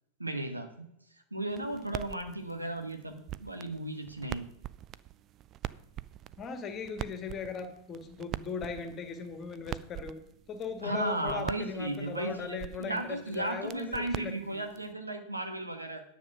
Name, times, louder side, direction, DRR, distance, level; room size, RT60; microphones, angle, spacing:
voice 1, 0.2-0.9 1.3-4.4 10.8-16.0, right 1 dB, 85° right, 5 dB, 1.4 m, -35 dB
sound 1, 1.5-14.9, right 12 dB, 30° right, 0.4 m, -44 dB
voice 2, 6.4-10.2 10.5-14.7, left 5 dB, 30° left, 7 dB, 1.8 m, -38 dB
9.9 x 7.1 x 6.0 m, 0.80 s
figure-of-eight pair, 90°, 0 cm